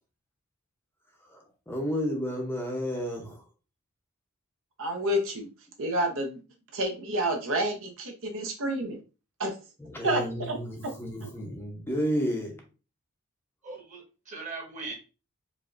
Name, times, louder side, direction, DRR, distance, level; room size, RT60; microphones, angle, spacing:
voice 1, 1.3-3.4 9.9-12.6, equal, 10° left, 0.6 m, -31 dB
voice 2, 4.8-5.5 5.8-6.4 6.7-9.0 9.4-9.6 10.0-10.6 10.8-10.9, right 1 dB, 65° right, 0.8 m, -29 dB
voice 3, 13.6-14.9, right 3 dB, 35° right, 1.3 m, -39 dB
4.9 x 2.6 x 2.4 m
head